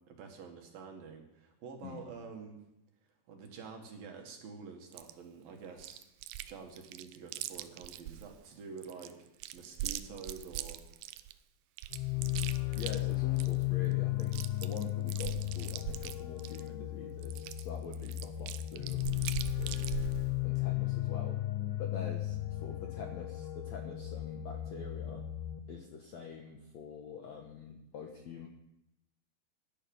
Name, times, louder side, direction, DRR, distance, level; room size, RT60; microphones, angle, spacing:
voice 1, 0.0-2.6 3.3-6.1 6.4-9.2 9.5-10.8, right 5 dB, 65° right, 2 dB, 3.4 m, -48 dB
Chewing mastication, 4.9-5.1 5.8-6.5 6.8-8.3 8.8-11.3 11.8-13.6 13.9-14.0 14.2-16.7 17.2-20.3, right 14 dB, 80° right, 2.5 m, -41 dB
sound 1, 11.9-25.6, left 16 dB, 90° left, 1.8 m, -35 dB
voice 2, 12.7-19.0 19.6-20.0 20.4-21.4 21.8-25.3 25.7-28.5, left 6 dB, 70° left, 2 dB, 1.7 m, -45 dB
16.5 x 11.0 x 5.5 m, 0.88 s
omnidirectional pair, 4.8 m